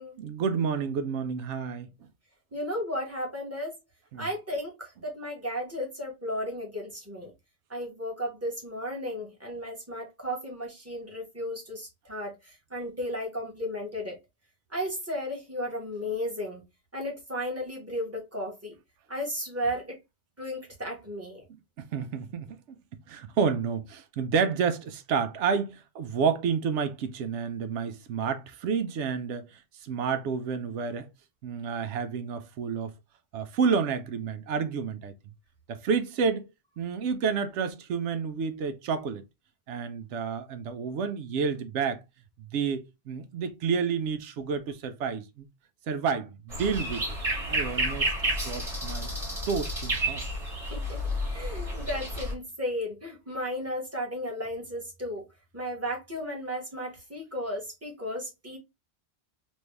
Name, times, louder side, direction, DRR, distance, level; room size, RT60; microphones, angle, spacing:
voice 1, 0.2-1.9 4.1-4.3 21.8-22.6 23.1-31.1 31.4-32.9 33.3-35.1 35.7-36.5 36.8-39.2 39.7-42.0 42.4-45.5 45.9-47.0 47.5-49.1 49.5-50.2, right 6 dB, 85° right, 0.9 m, -30 dB
voice 2, 2.5-3.7 4.2-7.3 7.7-14.2 14.7-16.6 16.9-18.8 19.1-20.0 20.4-21.4 50.7-51.0 51.3-55.3 55.5-58.6, equal, 15° right, 1.3 m, -34 dB
sound 1, 46.5-52.3, right 1 dB, 30° right, 1.8 m, -31 dB
3.2 x 2.6 x 3.2 m
omnidirectional pair, 1.2 m